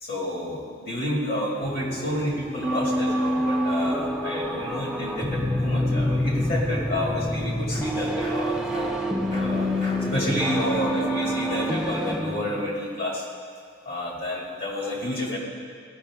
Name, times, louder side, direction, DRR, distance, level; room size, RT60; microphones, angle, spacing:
voice 1, 0.0-13.2 13.9-15.4, left 1 dB, 55° left, -4 dB, 2.2 m, -30 dB
sound 1, 1.6-12.7, equal, 5° right, 0.4 m, -27 dB
15.0 x 5.6 x 3.5 m, 2.1 s
head